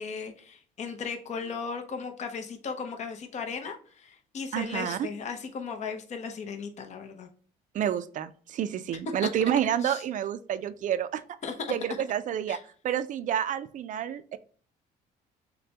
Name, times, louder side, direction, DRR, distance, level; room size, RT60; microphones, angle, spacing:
voice 1, 0.0-7.3 9.2-9.3 9.8-10.0 11.4-11.5 12.5-12.6, left 5 dB, 45° left, 5 dB, 0.8 m, -36 dB
voice 2, 4.5-5.0 7.7-11.2 11.7-12.6 12.8-14.4, right 9 dB, 50° right, 12 dB, 0.4 m, -29 dB
6.6 x 2.2 x 2.8 m, 0.43 s
cardioid pair, 110°, 17 cm